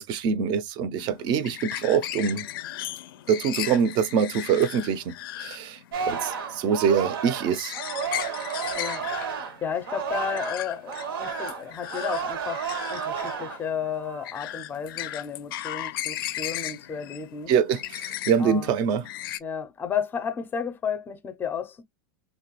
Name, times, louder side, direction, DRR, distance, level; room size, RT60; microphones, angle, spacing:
voice 1, 0.0-2.5 3.3-5.8 6.1-7.7 17.5-19.1, right 7 dB, 40° right, 0.4 m, -24 dB
sound 1, 1.0-19.4, left 13 dB, 80° left, 0.4 m, -36 dB
Singing, 5.9-10.6 10.9-13.7 14.1-14.4, right 6 dB, 85° right, 0.7 m, -32 dB
voice 2, 8.8-9.1 9.6-17.5 18.4-18.7 19.4-21.8, left 7 dB, 15° left, 0.5 m, -32 dB
3.0 x 2.2 x 2.9 m
supercardioid pair, 140°, 12 cm